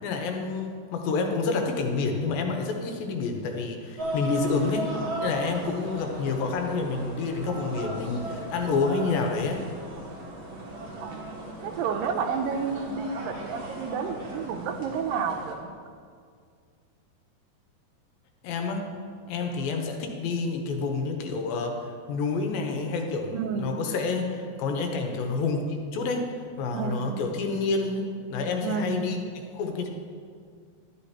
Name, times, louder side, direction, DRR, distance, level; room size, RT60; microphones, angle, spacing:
voice 1, 0.0-4.9 5.2-9.6 18.4-18.9 19.3-29.2 29.5-29.9, left 4 dB, 85° left, 3 dB, 2.6 m, -28 dB
sound 1, 4.0-15.5, right 1 dB, 65° right, 1.2 m, -37 dB
voice 2, 11.0-11.3 11.6-15.7 23.3-23.7 26.7-27.4 28.6-29.2, right 6 dB, 80° right, 6 dB, 2.2 m, -31 dB
11.5 x 9.8 x 2.9 m, 2.1 s
omnidirectional pair, 4.1 m